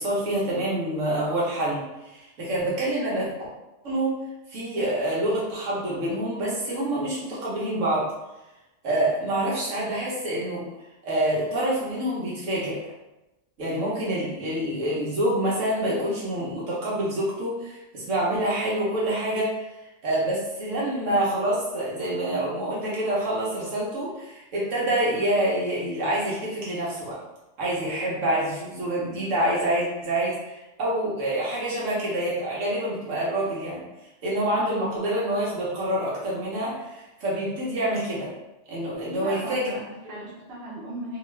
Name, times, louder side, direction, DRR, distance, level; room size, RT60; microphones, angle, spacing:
voice 1, 0.0-3.3 3.8-4.1 4.5-8.1 8.8-10.6 11.0-12.8 13.6-19.5 20.0-27.2 27.6-33.8 34.2-38.3 38.7-39.7, right 1 dB, 90° right, -6 dB, 1.3 m, -27 dB
voice 2, 39.1-41.2, right 1 dB, 60° right, -5 dB, 1.0 m, -37 dB
2.8 x 2.4 x 3.1 m, 0.99 s
omnidirectional pair, 1.2 m